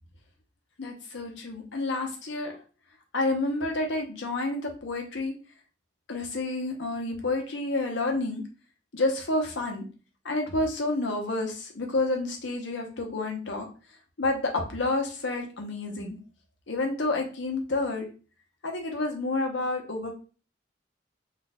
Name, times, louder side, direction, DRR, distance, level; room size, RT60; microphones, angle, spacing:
voice 1, 0.8-2.6 3.1-5.3 6.1-8.4 8.9-9.8 10.2-13.7 14.2-16.2 16.7-18.1 18.6-20.2, left 2 dB, 80° left, 2 dB, 0.8 m, -29 dB
2.6 x 2.3 x 4.0 m, 0.36 s
head